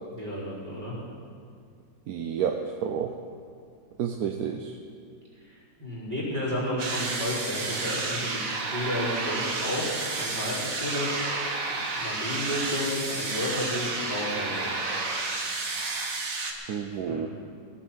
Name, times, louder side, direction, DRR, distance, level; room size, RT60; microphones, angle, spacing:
voice 1, 0.1-0.9 5.4-14.8 15.2-15.4 17.1-17.3, left 1 dB, 25° right, -7 dB, 4.3 m, -32 dB
voice 2, 2.1-3.1 4.0-4.7 16.7-17.3, right 8 dB, 65° right, 4 dB, 1.0 m, -30 dB
sound 1, 6.8-16.5, right 3 dB, 50° right, 1.6 m, -31 dB
16.0 x 8.7 x 7.4 m, 2.3 s
omnidirectional pair, 2.1 m